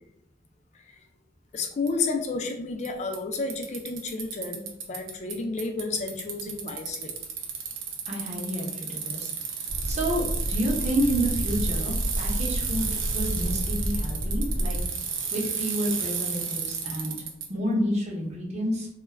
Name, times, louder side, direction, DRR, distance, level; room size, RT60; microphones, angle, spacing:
voice 1, 1.5-7.1, left 4 dB, 35° left, 4 dB, 0.3 m, -31 dB
Bicycle, 1.9-2.0 2.9-3.0 3.1-5.3 5.6-17.5, right 6 dB, 85° right, 0.5 m, -32 dB
voice 2, 8.1-9.3 9.9-14.8 15.3-17.1 17.5-18.9, equal, 35° right, -2 dB, 0.7 m, -29 dB
sound 1, 9.7-14.9, equal, 90° left, 0.8 m, -30 dB
2.2 x 2.1 x 3.2 m, 0.77 s
head